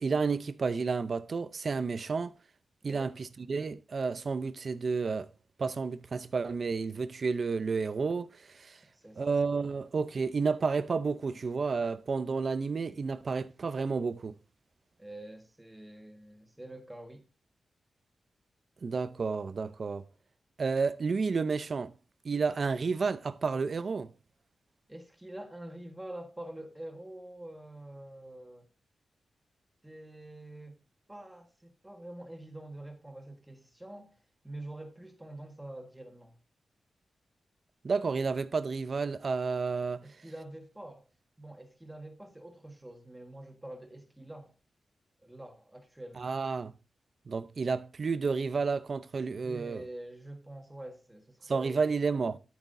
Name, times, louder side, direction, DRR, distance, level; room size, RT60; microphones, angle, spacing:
voice 1, 0.0-2.3 2.8-5.3 5.6-8.8 9.2-14.4 18.8-20.0 20.6-21.9 22.2-24.1 37.8-40.0 46.2-46.7 47.3-49.8 51.5-52.4, right 4 dB, 50° right, 0.6 m, -31 dB
voice 2, 8.9-9.4 15.0-17.2 24.9-28.7 29.8-30.8 31.1-34.2 34.4-36.4 40.0-41.0 41.4-44.5 45.2-46.3 49.4-51.9, right 1 dB, 10° right, 1.6 m, -46 dB
10.5 x 9.0 x 2.7 m
wide cardioid pair, 120°, 0 cm